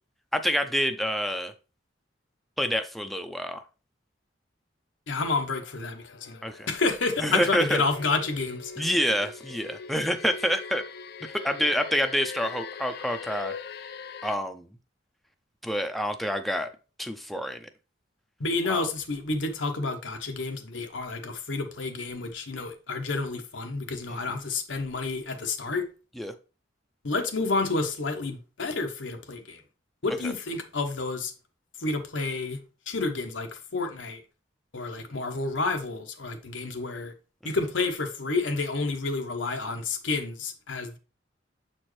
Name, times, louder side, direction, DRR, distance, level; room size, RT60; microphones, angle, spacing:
voice 1, 0.3-1.5 2.6-3.6 6.4-6.7 7.2-7.8 8.8-10.8 11.2-13.5 14.2-14.7 15.6-16.7 17.0-17.7 18.7-18.9 24.1-24.2 26.2-26.3 30.2-30.3 37.4-37.5, equal, ahead, 0.4 m, -27 dB
voice 2, 5.1-6.4 6.7-8.7 18.4-25.8 27.0-29.6 30.0-31.3 31.8-32.6 32.9-34.2 34.7-37.1 37.4-41.0, left 3 dB, 85° left, 1.0 m, -30 dB
sound 1, 5.4-14.4, left 6 dB, 60° left, 0.4 m, -42 dB
7.0 x 4.4 x 3.1 m
head